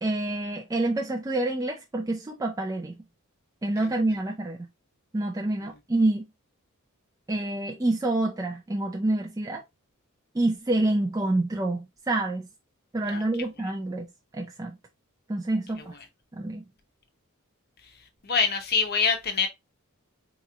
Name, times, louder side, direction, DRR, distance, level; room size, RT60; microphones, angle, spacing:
voice 1, 0.0-3.0 3.6-4.6 5.1-6.2 7.3-9.6 10.3-12.5 12.9-14.1 14.3-14.7 15.3-15.9 16.3-16.6, right 2 dB, 15° right, 0.4 m, -27 dB
voice 2, 13.0-13.5 15.8-16.0 17.8-17.9 18.2-19.5, left 5 dB, 45° left, 0.8 m, -26 dB
4.0 x 3.0 x 2.3 m
head